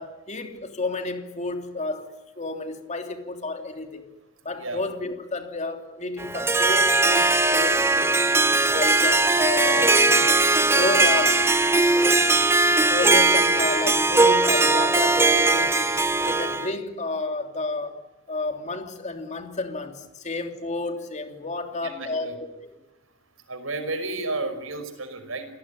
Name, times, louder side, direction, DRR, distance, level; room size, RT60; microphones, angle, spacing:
voice 1, 0.0-2.1 2.4-4.1 4.4-8.3 8.7-10.0 10.7-11.5 12.9-22.7, left 2 dB, 35° left, 6 dB, 3.0 m, -31 dB
Harp, 6.2-16.7, right 3 dB, 15° right, 0.8 m, -20 dB
voice 2, 21.8-22.3 23.5-25.5, right 2 dB, 80° right, 8 dB, 5.4 m, -32 dB
28.5 x 18.5 x 10.0 m, 0.97 s
head